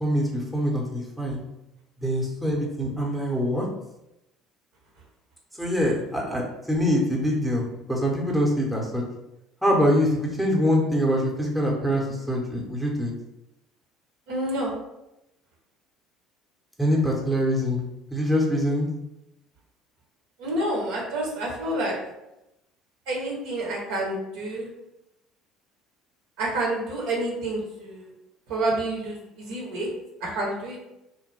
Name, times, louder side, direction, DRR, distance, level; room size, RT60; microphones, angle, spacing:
voice 1, 0.0-1.4 2.0-3.6 5.6-9.0 9.6-13.1 16.8-18.9, equal, ahead, -3 dB, 0.8 m, -24 dB
voice 2, 14.3-14.7 20.4-21.9 23.1-24.7 26.4-28.1 28.5-29.9 30.2-30.8, right 1 dB, 60° right, -2 dB, 0.9 m, -28 dB
3.0 x 2.1 x 3.2 m, 0.89 s
figure-of-eight pair, 60°, 0 cm